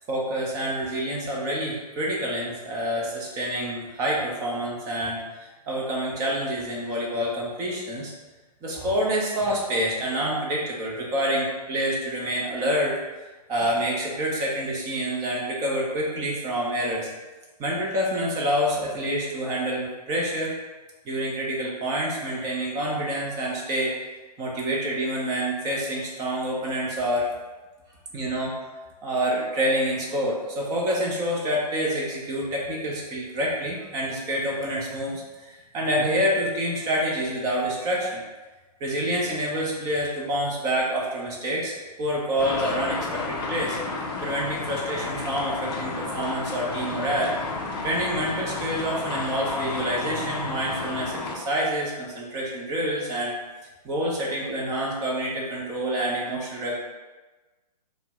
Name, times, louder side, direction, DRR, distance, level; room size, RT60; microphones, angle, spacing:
voice 1, 0.1-5.3 5.7-8.1 8.6-13.0 13.5-17.1 17.6-20.5 21.0-23.9 24.4-27.3 28.1-28.5 29.0-38.2 38.8-47.3 47.8-53.3 53.8-56.8, equal, 15° right, -3 dB, 0.6 m, -27 dB
sound 1, 42.4-51.4, left 3 dB, 35° left, 0.5 m, -32 dB
4.5 x 2.1 x 3.5 m, 1.2 s
hypercardioid pair, 140°, 21 cm